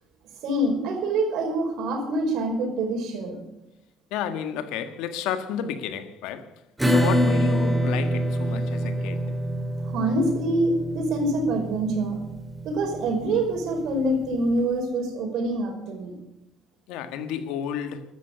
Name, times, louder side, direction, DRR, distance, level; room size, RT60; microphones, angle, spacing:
voice 1, 0.4-3.4 9.8-12.2 12.6-16.2, right 1 dB, 75° right, 5.2 m, -25 dB
voice 2, 4.1-6.5 6.9-9.3 16.9-18.0, left 8 dB, 90° left, 1.6 m, -31 dB
Acoustic guitar / Strum, 6.8-14.0, equal, 10° right, 3.1 m, -26 dB
14.5 x 12.5 x 6.8 m
supercardioid pair, 85°, 0 cm